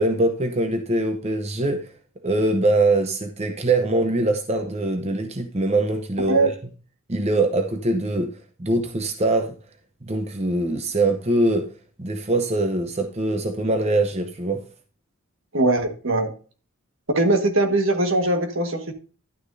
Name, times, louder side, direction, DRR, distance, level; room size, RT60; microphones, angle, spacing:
voice 1, 0.0-1.9 2.2-6.5 7.1-9.6 10.0-11.7 12.0-14.6, right 2 dB, 30° right, 6 dB, 0.8 m, -23 dB
voice 2, 15.5-16.3 17.1-18.9, right 2 dB, 65° right, 6 dB, 1.5 m, -21 dB
11.5 x 9.4 x 2.7 m, 0.37 s
head